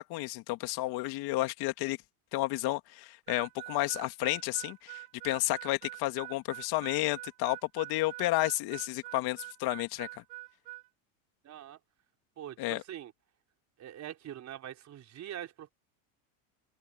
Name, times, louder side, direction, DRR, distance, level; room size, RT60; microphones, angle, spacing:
voice 1, 0.0-2.0 2.3-10.1 12.6-12.8, left 18 dB, 55° left, 2.2 m, -31 dB
Harmonica, 3.3-10.9, right 20 dB, 85° right, 3.0 m, -45 dB
voice 2, 11.4-11.8 12.4-13.1 13.8-15.7, right 11 dB, 35° right, 4.6 m, -43 dB
open air
supercardioid pair, 125°, 46 cm